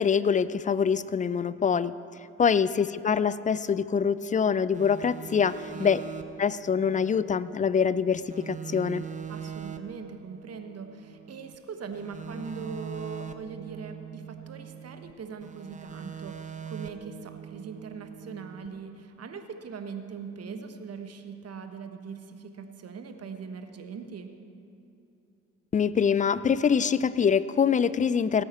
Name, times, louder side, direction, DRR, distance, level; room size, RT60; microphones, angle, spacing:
voice 1, 0.0-1.9 2.4-6.0 6.4-9.0 25.7-28.4, left 6 dB, 25° left, 17 dB, 0.4 m, -24 dB
sound 1, 4.7-8.0 8.3-11.5 11.9-15.1 15.4-18.7, right 8 dB, 20° right, 0.8 m, -42 dB
voice 2, 9.3-24.3, right 5 dB, 45° right, 7 dB, 1.3 m, -41 dB
17.5 x 8.8 x 4.4 m, 2.8 s
hypercardioid pair, 50°, 35 cm